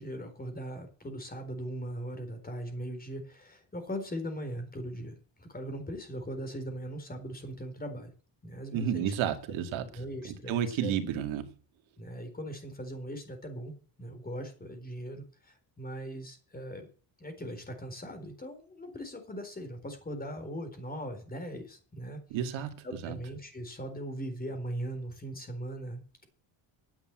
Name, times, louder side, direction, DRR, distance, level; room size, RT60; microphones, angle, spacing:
voice 1, 0.0-8.1 8.4-9.1 9.8-10.9 12.0-16.9 17.2-22.2 22.8-26.2, equal, 20° left, 7 dB, 4.1 m, -40 dB
voice 2, 8.7-9.9 10.2-11.5 22.3-23.2, right 9 dB, 85° right, 7 dB, 2.2 m, -31 dB
10.5 x 7.8 x 8.8 m, 0.39 s
cardioid pair, 110°, 46 cm